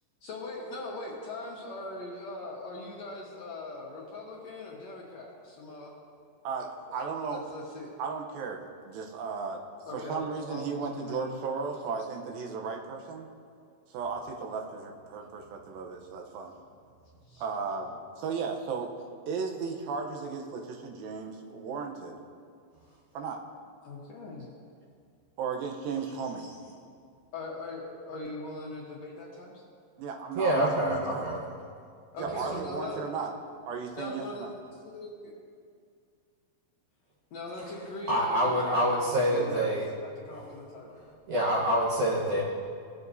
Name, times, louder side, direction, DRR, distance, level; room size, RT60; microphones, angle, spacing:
voice 1, 0.2-5.9 6.9-7.0 7.3-7.9 9.9-11.4 17.3-17.4 23.8-24.5 27.3-29.6 32.1-33.1 34.0-34.5 34.8-35.3 37.3-41.0 42.3-42.4, left 2 dB, 65° left, -3 dB, 1.8 m, -41 dB
voice 2, 6.4-7.4 8.0-8.6 8.9-9.6 9.9-13.3 13.9-16.5 17.4-18.9 19.3-22.2 23.1-23.4 25.4-26.5 30.0-31.3 32.2-33.3 33.7-34.5, right 5 dB, 90° right, 2 dB, 2.7 m, -35 dB
voice 3, 30.4-31.4 32.5-32.6 38.1-39.8 40.3-40.4 41.3-42.4, equal, 65° right, -6 dB, 2.4 m, -26 dB
19.0 x 7.0 x 2.7 m, 2.2 s
omnidirectional pair, 4.0 m